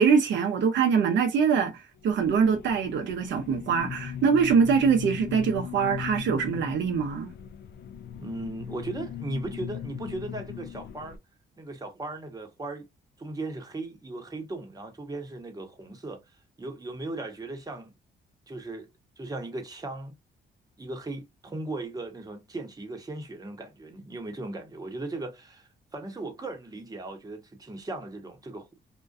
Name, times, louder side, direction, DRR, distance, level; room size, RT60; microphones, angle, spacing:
voice 1, 0.0-7.3, right 6 dB, 70° right, 0.5 m, -23 dB
sound 1, 2.0-11.2, left 9 dB, 60° left, 0.4 m, -39 dB
voice 2, 8.2-11.2 11.6-12.9 13.2-16.2 16.6-17.9 18.5-18.9 19.2-20.2 20.8-28.9, right 2 dB, 20° right, 0.8 m, -37 dB
2.4 x 2.2 x 2.3 m
cardioid pair, 85°, 19 cm